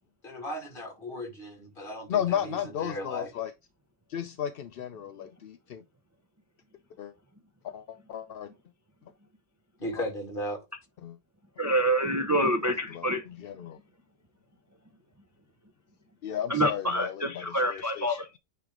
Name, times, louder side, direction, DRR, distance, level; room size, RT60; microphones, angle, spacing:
voice 1, 0.2-3.3 9.8-10.6, equal, 40° left, 2.6 m, -36 dB
voice 2, 2.1-3.5 4.1-5.8 7.0-7.1 7.6-8.5 10.0-10.1 11.0-11.2 12.9-13.1 13.4-13.8 16.2-18.4, left 10 dB, 60° left, 0.6 m, -34 dB
voice 3, 11.6-13.3 16.5-18.4, right 1 dB, 20° right, 0.5 m, -27 dB
9.3 x 3.3 x 3.7 m
omnidirectional pair, 1.4 m